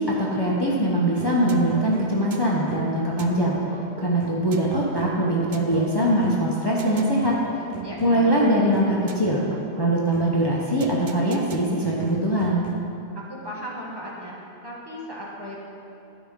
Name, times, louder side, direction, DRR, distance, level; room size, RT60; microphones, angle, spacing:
voice 1, 0.0-3.6 4.0-7.3 8.0-9.4 9.8-12.7, right 1 dB, 25° left, -4 dB, 0.9 m, -22 dB
sound 1, 1.2-13.0, right 6 dB, 55° right, 0.6 m, -39 dB
voice 2, 7.8-8.4 13.1-14.3 14.6-15.6, equal, 25° right, -5 dB, 1.4 m, -36 dB
12.0 x 5.2 x 5.2 m, 2.7 s
omnidirectional pair, 1.1 m